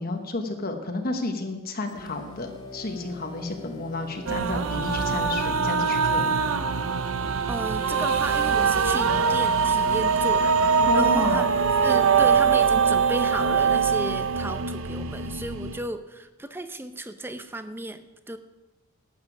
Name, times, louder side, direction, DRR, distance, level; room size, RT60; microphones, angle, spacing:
voice 1, 0.0-6.4 9.0-9.2 10.8-11.5, left 2 dB, 45° left, 4 dB, 1.1 m, -31 dB
sound 1, 1.9-8.1, left 1 dB, 20° left, 2.0 m, -44 dB
sound 2, 4.3-15.8, right 6 dB, 80° right, 0.7 m, -23 dB
voice 2, 7.5-11.5 11.8-18.4, right 1 dB, 10° right, 10 dB, 0.6 m, -34 dB
12.0 x 9.1 x 6.0 m, 1.1 s
head